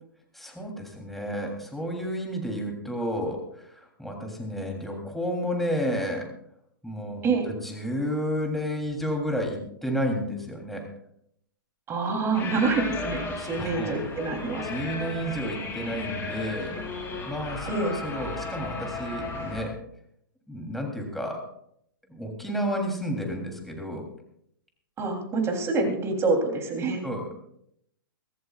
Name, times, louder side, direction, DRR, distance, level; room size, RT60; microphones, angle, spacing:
voice 1, 0.3-6.3 6.8-10.9 13.4-13.9 14.6-19.8 20.5-21.4 22.0-24.1 27.0-27.3, equal, ahead, 0 dB, 3.5 m, -31 dB
voice 2, 11.9-14.7 17.7-17.9 25.0-27.0, right 3 dB, 20° right, 3 dB, 3.5 m, -26 dB
sound 1, 12.3-19.7, left 3 dB, 20° left, 5.4 m, -35 dB
23.5 x 14.0 x 2.5 m, 0.72 s
hypercardioid pair, 120°, 12 cm